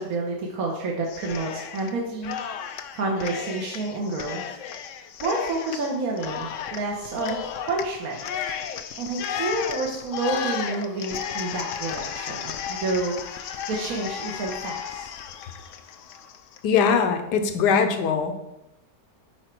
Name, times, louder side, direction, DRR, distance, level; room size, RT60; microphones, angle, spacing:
voice 1, 0.0-2.4 2.9-4.4 5.2-7.4 7.7-8.2 9.0-15.1, right 2 dB, 55° right, -1 dB, 1.4 m, -29 dB
Cheering, 1.1-1.9 2.2-16.6, left 8 dB, 90° left, 0.6 m, -34 dB
voice 2, 16.6-18.3, left 6 dB, 70° left, 7 dB, 1.3 m, -21 dB
9.1 x 4.8 x 4.5 m, 0.92 s
omnidirectional pair, 2.0 m